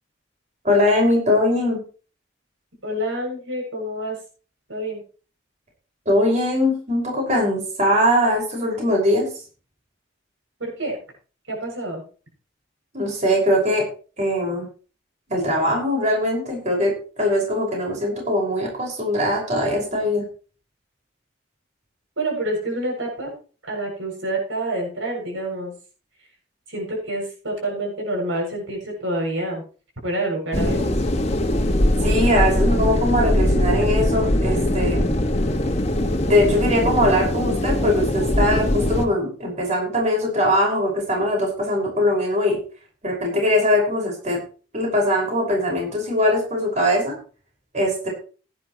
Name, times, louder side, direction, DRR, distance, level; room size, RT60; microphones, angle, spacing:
voice 1, 0.6-1.8 6.1-9.3 12.9-13.9 14.2-14.7 15.3-20.2 32.0-35.1 36.3-42.6 43.0-44.4 44.7-47.2 47.7-48.1, left 1 dB, 35° right, -1 dB, 5.8 m, -21 dB
voice 2, 2.8-4.2 4.7-5.0 10.6-11.0 11.5-12.0 22.2-23.3 23.7-25.7 26.7-29.6 30.0-30.9, right 1 dB, 90° right, 0 dB, 7.5 m, -27 dB
sound 1, 30.5-39.1, left 1 dB, 35° left, 1.8 m, -21 dB
18.0 x 10.5 x 3.2 m, 0.38 s
head